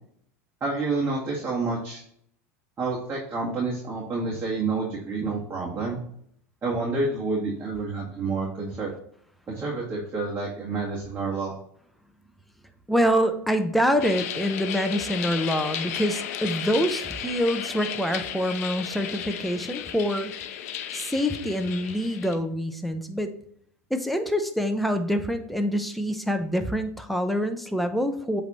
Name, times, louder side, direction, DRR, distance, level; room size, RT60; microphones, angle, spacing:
voice 1, 0.6-2.0 2.8-6.0 6.6-8.9 9.5-11.5, right 3 dB, 25° right, -4 dB, 1.9 m, -29 dB
voice 2, 12.9-20.3 20.9-23.3 23.9-28.4, equal, ahead, 6 dB, 0.8 m, -26 dB
sound 1, 14.0-22.4, left 9 dB, 75° left, 0.6 m, -34 dB
7.8 x 3.4 x 4.2 m, 0.65 s
hypercardioid pair, 100°, 8 cm